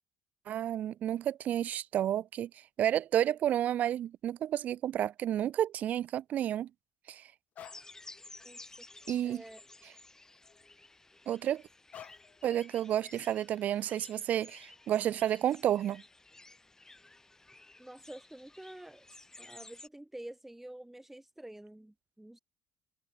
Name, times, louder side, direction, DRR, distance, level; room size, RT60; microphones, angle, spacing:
voice 1, 0.5-2.5 2.8-6.7 7.1-7.2 9.1-9.4 11.3-11.6 12.4-16.0, right 11 dB, 60° right, 0.8 m, -31 dB
sound 1, 7.6-7.9 8.4-8.6 9.0-10.0 10.3-10.7 11.9-12.4, left 10 dB, 60° left, 7.1 m, -52 dB
sound 2, 7.6-19.9, left 2 dB, 15° left, 5.5 m, -54 dB
voice 2, 8.4-8.9 9.2-9.6 17.8-19.1 19.4-22.4, right 1 dB, 10° right, 2.1 m, -48 dB
hypercardioid pair, 60°, 3 cm